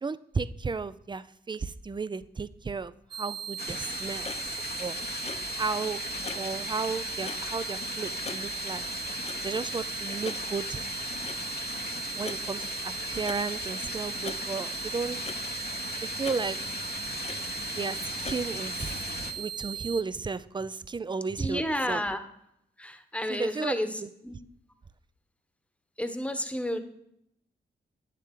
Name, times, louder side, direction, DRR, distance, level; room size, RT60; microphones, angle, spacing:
voice 1, 0.0-4.3 4.8-5.0 5.6-6.0 6.4-9.2 9.4-10.8 12.1-15.3 16.0-16.6 17.8-22.0 23.3-24.1, right 4 dB, 25° right, 15 dB, 0.5 m, -34 dB
sound 1, 3.1-20.0, right 8 dB, 60° right, 0.7 m, -38 dB
sound 2, 3.6-19.3, left 5 dB, 55° left, 1.0 m, -38 dB
Clock, 3.9-19.1, left 4 dB, 35° left, 0.6 m, -46 dB
voice 2, 21.4-22.2 22.8-24.3 26.0-26.8, left 1 dB, 5° left, 8 dB, 1.1 m, -31 dB
9.2 x 7.4 x 3.8 m, 0.76 s
supercardioid pair, 45°, 19 cm